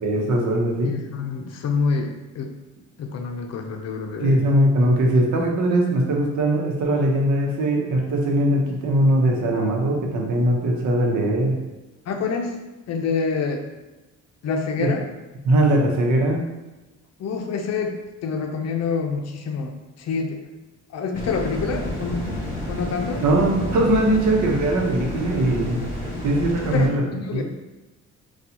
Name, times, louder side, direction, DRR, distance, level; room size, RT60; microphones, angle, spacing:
voice 1, 0.0-0.9 4.2-11.6 14.8-14.9 15.4-16.4 23.2-25.8 26.2-27.0 27.3-27.4, right 1 dB, 70° right, 0 dB, 0.9 m, -20 dB
voice 2, 0.8-2.5 3.0-4.4 12.1-12.6 12.9-13.7 14.4-15.1 17.2-19.7 20.0-20.4 20.9-22.3 22.7-23.2 26.3-27.4, left 5 dB, 60° left, 4 dB, 0.5 m, -27 dB
sound 1, 21.1-26.9, left 1 dB, 25° left, 1.4 m, -30 dB
4.2 x 2.3 x 2.7 m, 1.1 s
cardioid pair, 90°, 30 cm